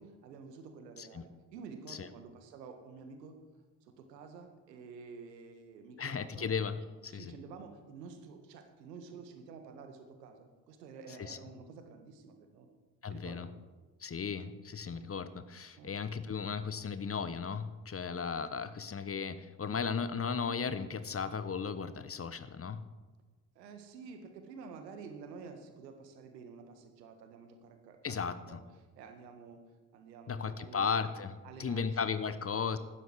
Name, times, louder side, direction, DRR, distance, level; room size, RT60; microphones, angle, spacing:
voice 1, 0.0-3.4 3.8-6.5 7.1-12.7 13.1-13.5 14.9-15.1 15.7-15.9 23.5-28.6 29.0-29.6 29.9-31.1 31.4-31.9, right 5 dB, 80° right, 7 dB, 1.7 m, -50 dB
voice 2, 6.0-7.3 11.2-11.4 13.0-13.5 14.0-22.8 28.0-28.6 30.3-32.8, left 6 dB, 30° left, 13 dB, 1.1 m, -36 dB
16.0 x 12.5 x 4.7 m, 1.3 s
figure-of-eight pair, 45°, 49 cm